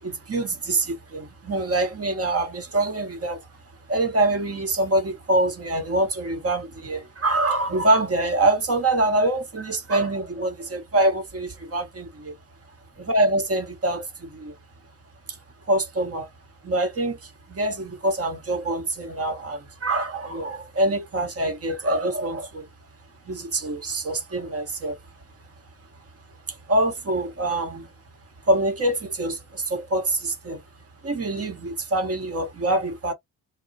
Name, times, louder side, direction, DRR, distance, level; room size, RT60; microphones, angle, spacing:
voice 1, 0.0-3.5 3.9-12.3 13.0-14.6 15.3-15.4 15.7-16.3 16.6-22.7 23.2-25.0 26.5-27.9 28.5-30.6 31.0-33.1, right 2 dB, 30° right, 1.1 m, -25 dB
2.3 x 2.0 x 2.7 m
hypercardioid pair, 45°, 47 cm